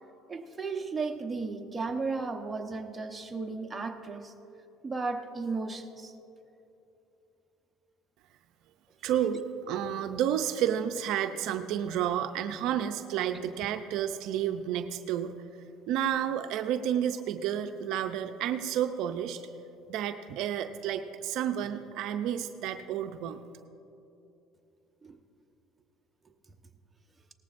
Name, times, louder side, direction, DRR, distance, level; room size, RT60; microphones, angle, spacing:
voice 1, 0.3-4.3 4.8-6.1 25.0-25.2, right 4 dB, 20° right, 4 dB, 1.0 m, -34 dB
voice 2, 9.0-15.3 15.9-19.4 19.9-23.4, right 10 dB, 70° right, 8 dB, 0.5 m, -31 dB
18.0 x 14.5 x 2.6 m, 2.8 s
supercardioid pair, 95°, 0 cm